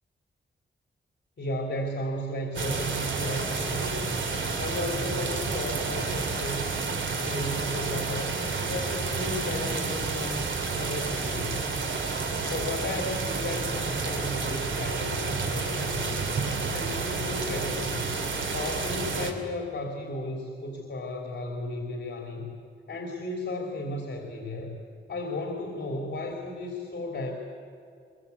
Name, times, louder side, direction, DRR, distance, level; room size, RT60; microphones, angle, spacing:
voice 1, 1.4-4.1 4.6-6.6 7.0-8.3 8.6-11.8 12.5-16.3 16.7-18.2 18.5-22.5 22.9-24.8 25.1-27.3, left 1 dB, 55° left, 1 dB, 3.2 m, -34 dB
sound 1, 2.5-19.3, right 4 dB, 70° right, 2.8 m, -30 dB
23.5 x 22.5 x 8.3 m, 2.4 s
wide cardioid pair, 120°, 20 cm